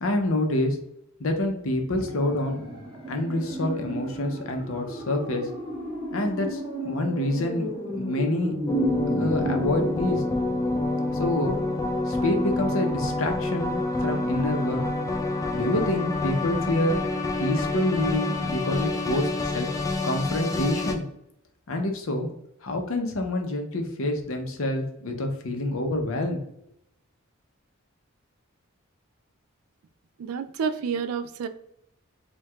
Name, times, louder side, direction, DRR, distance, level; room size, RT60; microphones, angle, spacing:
voice 1, 0.0-0.8 1.2-2.6 3.1-5.5 6.1-8.5 9.1-10.2 11.1-14.8 15.5-17.0 17.4-19.7 20.0-21.0 21.7-22.3 22.6-26.4, left 1 dB, 65° left, 4 dB, 0.7 m, -27 dB
sound 1, 2.0-11.1 11.4-11.5, right 1 dB, 20° right, 1.3 m, -33 dB
sound 2, 8.7-20.9, left 2 dB, 15° left, 0.3 m, -27 dB
voice 2, 30.2-31.5, right 6 dB, 90° right, 9 dB, 0.3 m, -29 dB
4.4 x 2.2 x 2.3 m, 0.76 s
head